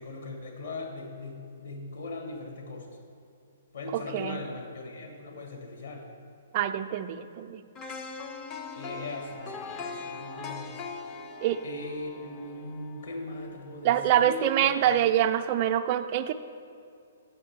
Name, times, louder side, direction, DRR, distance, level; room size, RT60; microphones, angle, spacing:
voice 1, 0.0-3.0 3.7-6.1 8.7-10.9 11.6-14.9, left 2 dB, 60° left, 1 dB, 1.5 m, -39 dB
voice 2, 3.9-4.4 6.5-7.6 11.4-11.6 13.8-16.3, right 11 dB, 35° right, 9 dB, 0.4 m, -25 dB
sound 1, 7.7-13.8 14.2-14.3, left 4 dB, 25° left, 0.6 m, -41 dB
8.9 x 6.5 x 4.5 m, 2.4 s
figure-of-eight pair, 120°, 0 cm